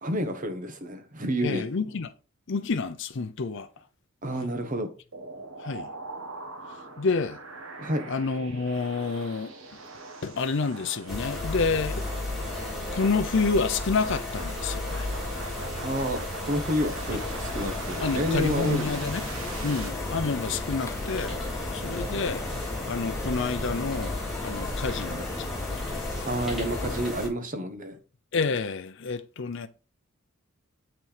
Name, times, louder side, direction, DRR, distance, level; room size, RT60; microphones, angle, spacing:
voice 1, 0.0-1.6 4.2-4.9 7.8-8.1 15.8-16.2 16.5-18.9 26.3-28.0, equal, 40° right, 1.2 m, -29 dB
voice 2, 1.4-2.1 2.5-3.7 5.6-5.9 7.0-7.4 8.1-9.5 10.2-12.0 12.9-15.1 18.0-19.3 19.6-21.4 21.7-22.4 22.9-24.2 24.4-25.6 28.3-29.7, left 4 dB, 60° left, 0.6 m, -28 dB
sound 1, 5.1-19.9, right 3 dB, 75° right, 1.4 m, -42 dB
sound 2, 11.1-27.3, left 2 dB, ahead, 3.3 m, -34 dB
sound 3, 16.9-27.1, left 2 dB, 15° left, 0.5 m, -37 dB
7.7 x 5.9 x 3.3 m
head